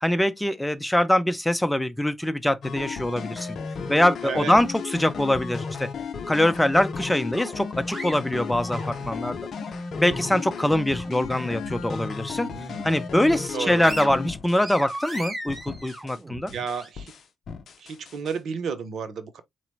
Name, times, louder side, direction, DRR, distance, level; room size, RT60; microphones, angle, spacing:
voice 1, 0.0-3.6 3.9-5.9 6.3-9.4 10.0-12.5 12.8-16.5, left 1 dB, 10° left, 0.7 m, -23 dB
sound 1, 2.6-15.2 15.5-16.2 16.5-18.4, left 5 dB, 60° left, 0.6 m, -34 dB
voice 2, 4.2-4.6 13.5-13.9 16.5-17.1 17.8-19.4, right 6 dB, 60° right, 0.8 m, -32 dB
sound 2, 7.3-9.4 9.8-11.3 11.6-11.8 12.2-13.0 13.4-16.9, right 1 dB, 30° right, 2.7 m, -39 dB
4.2 x 3.1 x 2.7 m
hypercardioid pair, 40°, 0 cm